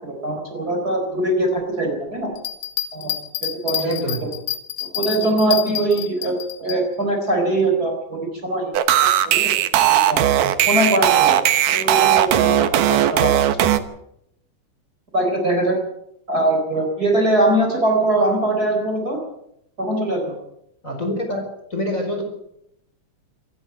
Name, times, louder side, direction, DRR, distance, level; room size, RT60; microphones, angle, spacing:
voice 1, 0.0-2.3 2.9-4.3 4.8-8.7 9.2-9.5 9.8-10.2 10.7-11.4 11.7-13.7 15.1-15.8 16.3-19.2 19.8-20.4, right 1 dB, 30° right, 2 dB, 4.6 m, -22 dB
Bell, 2.4-6.8 7.3-7.4, left 12 dB, 80° left, 3.2 m, -28 dB
voice 2, 3.7-4.2 20.8-21.4 21.7-22.2, left 1 dB, 25° left, 2 dB, 4.9 m, -25 dB
sound 1, 8.7-13.8, right 11 dB, 85° right, 2.8 m, -17 dB
27.0 x 11.0 x 9.1 m, 0.77 s
omnidirectional pair, 3.6 m